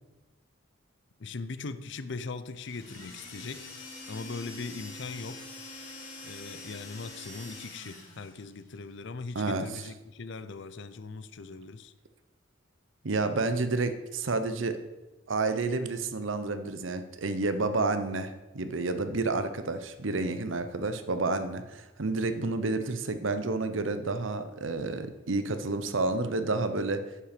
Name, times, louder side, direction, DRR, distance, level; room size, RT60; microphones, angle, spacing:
voice 1, 1.2-3.7 4.1-5.5 6.2-11.9, left 4 dB, 65° left, 12 dB, 0.6 m, -40 dB
sound 1, 2.5-8.4, left 2 dB, 45° left, 3.4 m, -45 dB
voice 2, 9.3-9.7 13.0-14.8 15.3-27.0, right 3 dB, 75° right, 10 dB, 0.9 m, -30 dB
9.6 x 5.8 x 6.7 m, 1.1 s
head